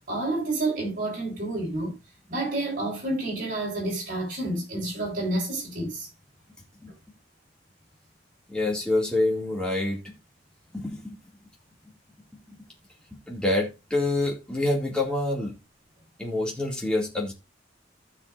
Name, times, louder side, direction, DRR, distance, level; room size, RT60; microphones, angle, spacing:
voice 1, 0.1-1.9 2.3-6.1, right 2 dB, 50° right, 5.6 m, -29 dB
voice 2, 8.5-10.1 10.7-11.1 13.1-15.6 16.2-17.3, left 2 dB, 5° left, 2.3 m, -27 dB
16.0 x 5.8 x 2.6 m
head